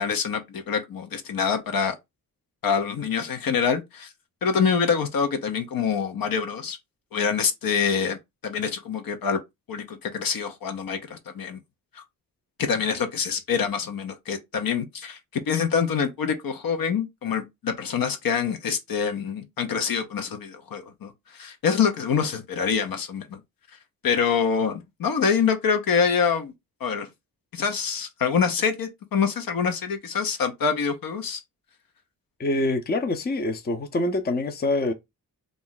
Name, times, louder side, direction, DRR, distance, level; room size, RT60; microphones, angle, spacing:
voice 1, 0.0-2.0 2.6-4.1 4.4-6.8 7.1-8.2 8.4-9.4 9.7-11.6 11.9-12.0 12.6-15.2 15.5-23.4 24.0-26.5 26.8-27.1 27.5-31.4, left 6 dB, 55° left, 0.7 m, -25 dB
voice 2, 32.4-34.9, left 2 dB, 25° left, 0.6 m, -25 dB
2.5 x 2.0 x 3.8 m
supercardioid pair, 45°, 41 cm